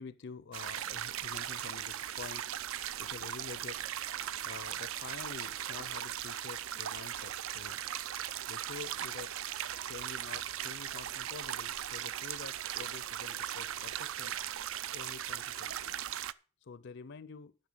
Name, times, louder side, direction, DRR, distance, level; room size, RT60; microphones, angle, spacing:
voice 1, 0.0-2.5 2.8-3.8 4.4-7.8 8.5-9.4 9.8-14.4 14.9-16.0 16.6-17.6, left 5 dB, 50° left, 0.5 m, -48 dB
sound 1, 0.5-16.3, right 11 dB, 60° right, 0.4 m, -38 dB
10.5 x 5.7 x 6.9 m
head